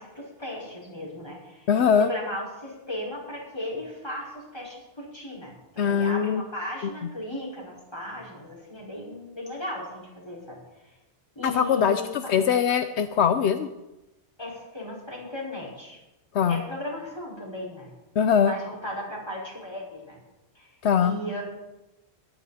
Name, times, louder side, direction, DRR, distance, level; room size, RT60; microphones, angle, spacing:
voice 1, 0.0-1.7 2.0-10.9 11.3-12.1 14.4-16.0 16.5-17.9 18.2-20.2 20.5-20.7 21.0-21.4, left 1 dB, 25° left, -4 dB, 5.1 m, -36 dB
voice 2, 1.7-2.1 5.8-6.4 11.4-13.7 16.3-16.6 18.2-18.5 20.8-21.2, left 7 dB, 80° left, 9 dB, 1.0 m, -22 dB
22.5 x 10.0 x 4.2 m, 0.98 s
omnidirectional pair, 1.1 m